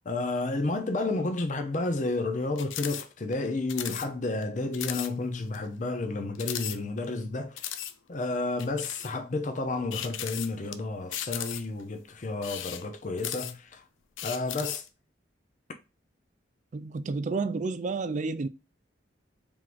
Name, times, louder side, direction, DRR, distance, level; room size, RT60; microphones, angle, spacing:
voice 1, 0.1-7.6 8.1-13.8 14.2-14.8, left 2 dB, 40° left, 0.6 m, -31 dB
sound 1, 2.6-3.1 3.3-3.4 3.7-4.1 4.4-4.5 4.7-5.1 5.5-5.6 6.4-7.2 7.6-7.9 8.6-9.1 9.9-10.7 11.1-11.8 12.3-13.7 14.2-14.9, left 11 dB, 90° left, 0.5 m, -36 dB
voice 2, 16.7-18.5, right 4 dB, 40° right, 0.4 m, -30 dB
4.5 x 3.6 x 2.5 m
head